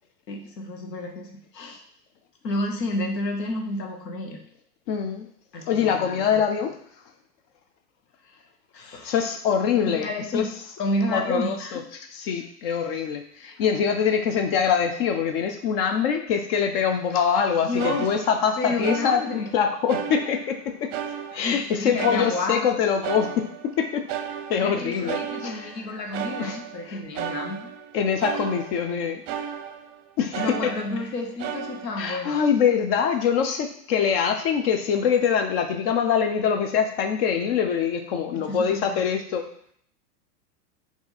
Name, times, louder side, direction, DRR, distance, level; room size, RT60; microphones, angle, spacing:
voice 1, 0.3-1.8 2.4-4.4 5.5-6.3 8.3-8.4 8.7-9.1 9.7-10.5 10.8-11.8 17.6-18.1 18.6-19.5 21.4-22.7 24.5-27.7 30.4-32.3 38.3-39.0, left 2 dB, 80° left, 2 dB, 1.1 m, -30 dB
voice 2, 4.9-5.3 5.7-6.7 9.0-10.1 10.3-10.4 11.1-11.8 12.1-20.9 21.3-24.1 24.5-25.7 26.4-26.6 26.9-27.0 27.9-29.2 30.2-30.7 32.0-39.4, left 7 dB, 40° left, 5 dB, 0.5 m, -24 dB
sound 1, 17.4-17.5 17.8-19.6 19.9-20.6 20.9-23.8 24.1-30.0 30.3-31.1 31.4-32.1, right 8 dB, 50° right, 0.6 m, -34 dB
4.5 x 2.8 x 4.1 m, 0.64 s
hypercardioid pair, 100°, 49 cm